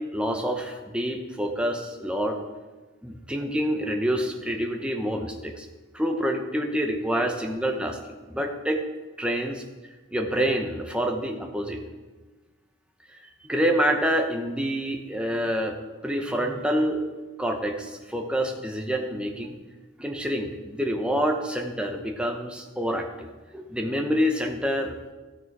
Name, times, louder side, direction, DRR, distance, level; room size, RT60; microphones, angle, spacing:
voice 1, 0.0-2.4 3.0-5.7 5.9-8.8 9.2-9.6 10.1-11.8 13.1-15.8 16.0-17.0 17.4-19.6 20.0-23.3 23.5-25.1, equal, 5° right, 2 dB, 0.9 m, -27 dB
13.5 x 6.9 x 4.7 m, 1.2 s
head